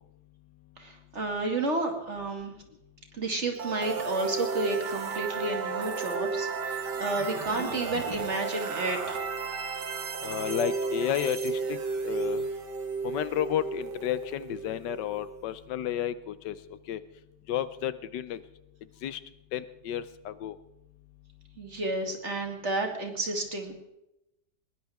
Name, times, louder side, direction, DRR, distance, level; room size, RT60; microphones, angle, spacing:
voice 1, 0.8-2.5 3.1-9.2 21.6-23.8, right 2 dB, 40° right, 4 dB, 2.4 m, -31 dB
sound 1, 3.6-15.4, right 4 dB, 75° right, 2.1 m, -33 dB
voice 2, 10.2-11.8 12.0-12.4 13.0-16.6 16.9-17.0 17.5-18.4 19.0-19.2 19.5-20.6, left 11 dB, 80° left, 15 dB, 1.4 m, -32 dB
20.5 x 20.0 x 3.5 m, 0.89 s
omnidirectional pair, 1.9 m